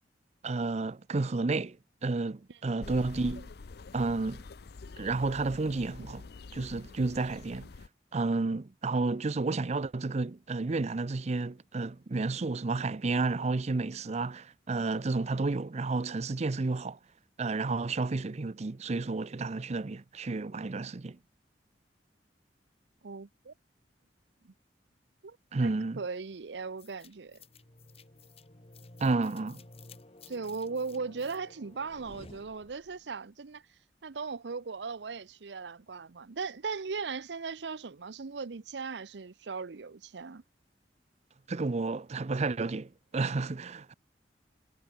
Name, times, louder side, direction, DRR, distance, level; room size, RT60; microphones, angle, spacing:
voice 1, 0.4-1.8 2.0-3.5 3.9-4.4 5.0-6.2 6.5-7.7 8.1-17.0 17.4-21.2 25.5-26.0 29.0-29.6 41.5-43.9, right 3 dB, 40° right, 0.5 m, -31 dB
sound 1, 2.8-7.9, left 3 dB, 65° left, 0.6 m, -46 dB
voice 2, 23.0-23.5 24.4-24.5 25.2-25.4 25.6-27.4 30.3-33.6 34.0-40.4, right 4 dB, 80° right, 0.7 m, -38 dB
sound 2, 26.8-33.1, left 2 dB, 35° left, 1.8 m, -53 dB
head